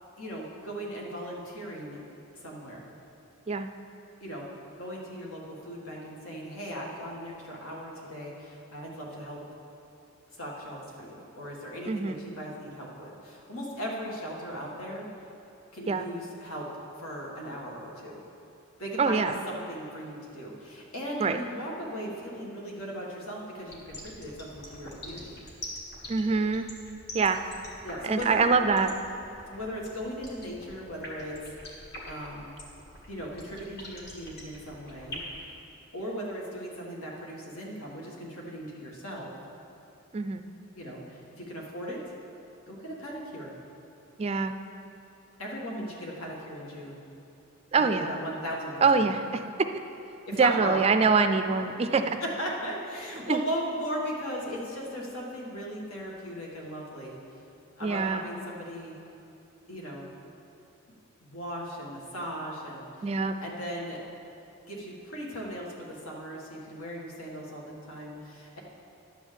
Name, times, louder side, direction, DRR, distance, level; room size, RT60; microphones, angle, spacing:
voice 1, 0.2-2.0 2.3-2.9 4.2-4.4 4.8-9.4 10.4-15.1 15.7-16.7 17.0-18.2 18.8-25.3 27.8-28.4 29.5-31.5 32.0-32.5 33.1-35.2 35.9-39.3 40.7-42.0 42.7-43.5 45.4-47.0 47.7-49.1 50.3-50.8 52.2-57.2 57.8-58.9 59.7-60.1 61.2-63.1 63.4-64.0 64.7-68.6, equal, 80° left, -3 dB, 1.8 m, -37 dB
voice 2, 11.8-12.2 15.9-16.1 19.0-19.4 21.2-21.4 26.1-26.7 27.1-27.4 28.0-28.9 40.1-40.4 44.2-44.5 47.7-48.1 48.8-49.4 50.4-52.2 53.2-53.4 57.8-58.3 63.0-63.4, right 4 dB, 30° right, 8 dB, 0.3 m, -24 dB
sound 1, 23.6-35.4, left 1 dB, 50° left, 1.8 m, -42 dB
11.5 x 4.5 x 7.5 m, 2.7 s
head